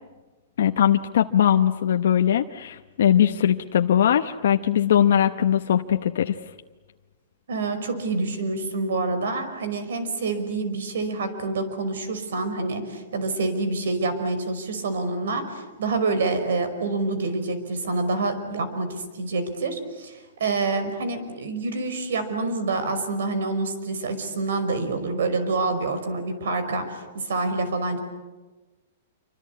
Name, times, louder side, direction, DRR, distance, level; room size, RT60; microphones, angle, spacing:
voice 1, 0.6-6.4, left 10 dB, 70° left, 6 dB, 0.9 m, -20 dB
voice 2, 7.5-28.0, right 3 dB, 80° right, 10 dB, 5.3 m, -27 dB
27.5 x 25.0 x 8.4 m, 1.2 s
hypercardioid pair, 165°, 0 cm